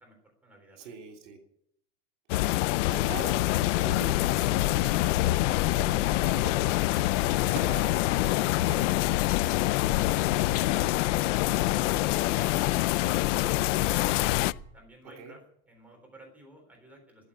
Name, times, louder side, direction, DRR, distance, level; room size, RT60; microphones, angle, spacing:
voice 1, 0.0-1.0 9.4-14.4 14.7-15.4 15.7-17.3, right 1 dB, 5° right, 1 dB, 3.6 m, -54 dB
voice 2, 0.7-1.4 2.8-5.3 5.7-8.9 15.2-15.3, right 5 dB, 85° right, 4 dB, 3.4 m, -44 dB
sound 1, 2.3-14.5, left 18 dB, 85° left, 0.5 m, -25 dB
sound 2, 3.9-14.6, left 2 dB, 25° left, 2.2 m, -44 dB
sound 3, 5.6-10.6, right 8 dB, 70° right, 2.3 m, -50 dB
13.5 x 8.3 x 9.9 m, 0.71 s
supercardioid pair, 180°, 35 cm